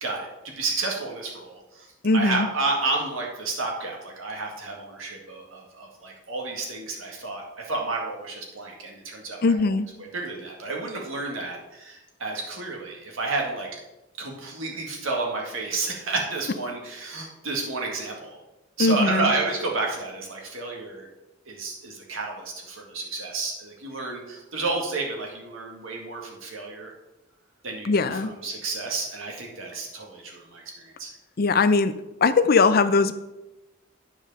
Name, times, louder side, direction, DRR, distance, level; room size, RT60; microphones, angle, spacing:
voice 1, 0.0-1.9 2.1-9.7 10.0-13.7 14.2-18.4 18.8-21.1 21.5-26.9 27.6-31.1, right 3 dB, 85° right, 0 dB, 2.0 m, -31 dB
voice 2, 2.0-2.5 9.4-9.9 18.8-19.3 27.8-28.3 31.4-31.9 32.2-33.1, left 3 dB, 50° left, 12 dB, 0.5 m, -20 dB
9.5 x 5.0 x 5.5 m, 0.99 s
head